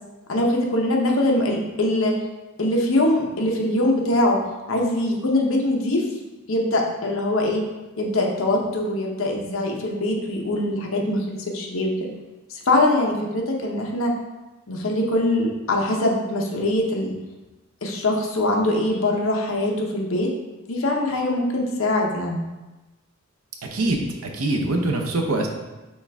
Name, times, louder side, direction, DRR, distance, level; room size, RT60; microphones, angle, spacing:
voice 1, 0.3-2.1 2.6-4.4 4.7-6.0 6.5-7.6 8.0-11.9 12.5-14.1 14.7-17.1 17.8-20.3 20.7-22.4, left 1 dB, 70° left, 0 dB, 0.8 m, -22 dB
voice 2, 23.7-25.5, right 2 dB, 90° right, 2 dB, 0.7 m, -24 dB
6.1 x 2.4 x 3.4 m, 1.1 s
head